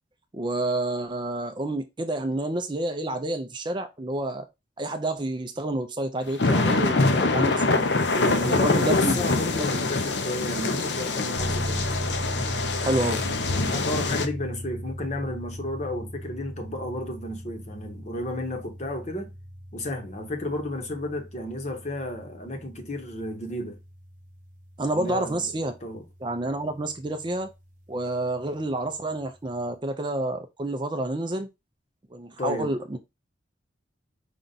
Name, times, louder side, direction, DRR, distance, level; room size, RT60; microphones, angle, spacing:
voice 1, 0.3-4.5 4.8-7.9 8.4-9.2 9.7-9.8 12.8-13.2 24.8-25.7 26.2-27.5 27.9-31.5 32.1-33.0, right 2 dB, 25° right, 0.5 m, -29 dB
sound 1, 6.3-14.3, left 3 dB, 65° left, 0.6 m, -24 dB
voice 2, 8.1-11.9 13.5-19.3 19.7-23.8 24.9-25.5 25.8-26.0 32.4-32.7, left 1 dB, 40° left, 0.9 m, -32 dB
sound 2, 11.4-25.8, equal, 45° right, 0.9 m, -37 dB
5.2 x 2.4 x 3.9 m
head